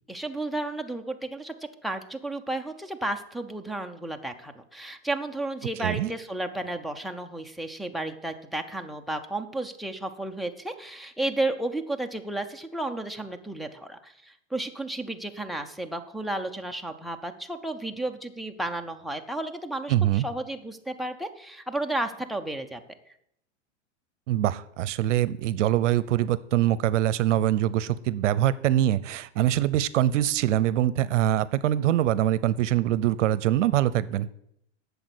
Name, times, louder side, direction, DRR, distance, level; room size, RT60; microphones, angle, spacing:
voice 1, 0.1-1.5 1.8-22.8, right 2 dB, ahead, 9 dB, 0.3 m, -33 dB
voice 2, 5.8-6.1 19.9-20.2 24.3-34.3, right 12 dB, 75° right, 17 dB, 0.7 m, -24 dB
8.6 x 6.9 x 8.2 m, 0.75 s
hypercardioid pair, 130°, 37 cm